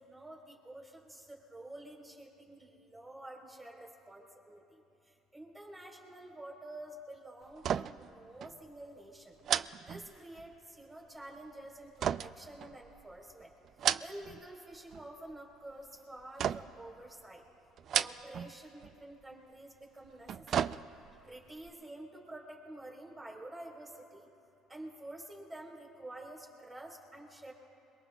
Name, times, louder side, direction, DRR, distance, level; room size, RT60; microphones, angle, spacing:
voice 1, 0.0-4.6 5.3-9.4 9.9-13.5 14.0-17.4 17.9-20.8 21.2-24.3 24.7-27.5, right 1 dB, 15° right, -1 dB, 3.9 m, -49 dB
sound 1, 7.6-8.1 8.4-8.6 9.4-10.5 12.0-13.1 13.6-14.4 14.7-15.3 16.4-16.9 17.8-18.5 18.8-18.9 20.0-21.2 21.6-21.7, right 9 dB, 55° right, 0.3 m, -34 dB
27.5 x 22.5 x 2.3 m, 2.7 s
cardioid pair, 100°, 0 cm